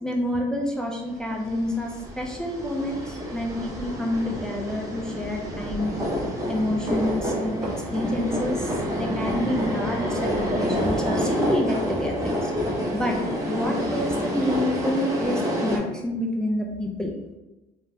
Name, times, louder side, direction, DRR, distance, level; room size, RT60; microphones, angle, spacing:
voice 1, 0.0-5.9 6.5-12.5 12.9-13.2 13.5-17.1, left 1 dB, 5° left, -1 dB, 0.4 m, -28 dB
sound 1, 1.4-15.8, equal, 20° right, 0.7 m, -28 dB
3.3 x 2.2 x 2.6 m, 1.0 s
cardioid pair, 110°, 17 cm